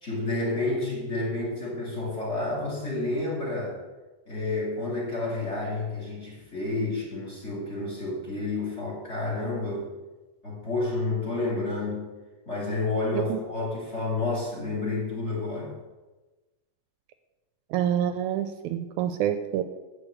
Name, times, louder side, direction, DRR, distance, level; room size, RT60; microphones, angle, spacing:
voice 1, 0.0-3.8 4.3-9.9 10.4-12.1 12.5-15.8, left 2 dB, 25° left, -3 dB, 2.5 m, -30 dB
voice 2, 17.7-19.6, right 10 dB, 80° right, 9 dB, 1.9 m, -27 dB
9.7 x 4.8 x 7.7 m, 1.2 s
omnidirectional pair, 3.6 m